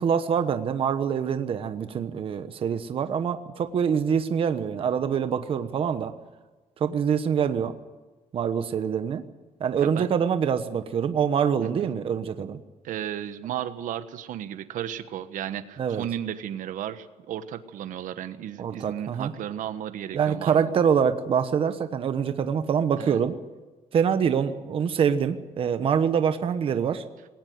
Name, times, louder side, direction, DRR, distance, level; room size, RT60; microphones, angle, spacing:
voice 1, 0.0-6.1 6.8-7.7 8.3-9.2 9.6-12.6 15.8-16.0 18.6-19.3 20.1-23.4 23.9-27.0, right 7 dB, 40° right, 9 dB, 1.2 m, -25 dB
voice 2, 11.6-11.9 12.8-20.7 23.0-23.2, right 10 dB, 70° right, 11 dB, 1.3 m, -34 dB
20.0 x 18.5 x 9.4 m, 1.3 s
cardioid pair, 170°, 14 cm